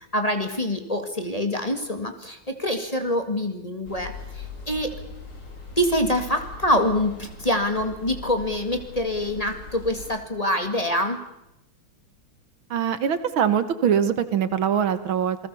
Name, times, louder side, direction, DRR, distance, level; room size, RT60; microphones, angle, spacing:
voice 1, 0.1-4.9 5.8-11.2, left 1 dB, 15° left, 5 dB, 2.1 m, -25 dB
sound 1, 3.9-10.2, left 3 dB, 75° left, 4.9 m, -41 dB
voice 2, 12.7-15.4, right 8 dB, 70° right, 12 dB, 2.0 m, -23 dB
28.5 x 19.5 x 7.0 m, 0.84 s
omnidirectional pair, 2.4 m